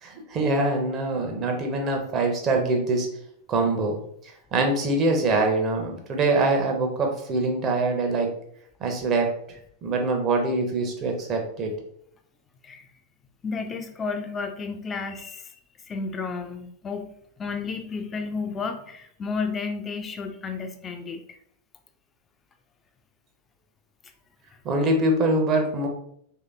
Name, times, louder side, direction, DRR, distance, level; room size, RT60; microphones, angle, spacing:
voice 1, 0.0-3.1 3.5-4.0 4.5-8.3 8.8-9.3 9.8-11.7 24.6-25.9, right 2 dB, 30° right, 2 dB, 0.7 m, -24 dB
voice 2, 13.4-15.4 15.9-17.1 17.4-21.2, left 4 dB, 20° left, 7 dB, 0.4 m, -32 dB
3.1 x 2.8 x 2.4 m, 0.67 s
figure-of-eight pair, 90°, 0 cm